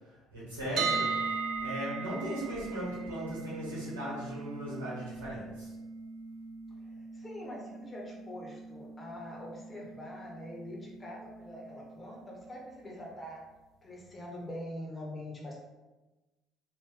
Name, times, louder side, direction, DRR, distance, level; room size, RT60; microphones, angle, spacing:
voice 1, 0.3-1.1 1.6-5.7, equal, 90° right, -8 dB, 1.2 m, -38 dB
sound 1, 0.8-12.7, right 4 dB, 60° right, 0.5 m, -39 dB
voice 2, 6.8-13.4 13.8-15.6, left 1 dB, 30° left, -2 dB, 1.1 m, -44 dB
3.3 x 2.6 x 3.3 m, 1.1 s
hypercardioid pair, 55°, 0 cm